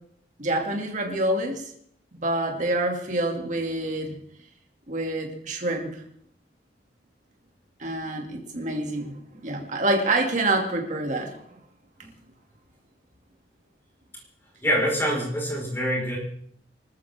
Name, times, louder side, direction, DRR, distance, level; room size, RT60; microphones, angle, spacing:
voice 1, 0.4-1.6 2.1-4.2 4.9-5.9 7.8-9.2 9.4-11.3, right 2 dB, 45° right, 2 dB, 2.6 m, -26 dB
voice 2, 14.6-16.2, equal, 15° left, -2 dB, 5.0 m, -25 dB
25.5 x 13.5 x 3.7 m, 0.67 s
head